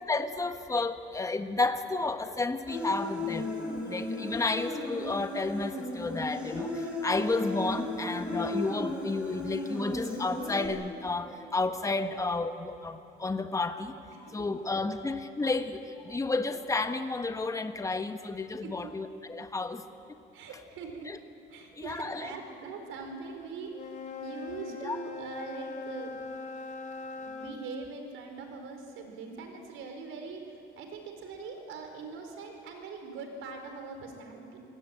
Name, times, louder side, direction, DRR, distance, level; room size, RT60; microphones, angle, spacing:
voice 1, 0.1-3.5 3.8-14.0 14.3-19.8 21.1-21.2 21.7-22.3 24.8-25.0, left 3 dB, 15° left, 8 dB, 1.3 m, -32 dB
Human voice, 2.7-10.7, left 1 dB, 5° right, 6.8 m, -35 dB
voice 2, 14.1-14.5 18.6-18.9 20.3-21.1 21.5-23.9 24.2-26.2 27.1-34.6, right 4 dB, 75° right, 5 dB, 4.8 m, -42 dB
Wind instrument woodwind instrument, 23.7-27.6, left 4 dB, 40° left, 2.8 m, -41 dB
27.0 x 19.0 x 9.1 m, 2.6 s
cardioid pair, 110°, 21 cm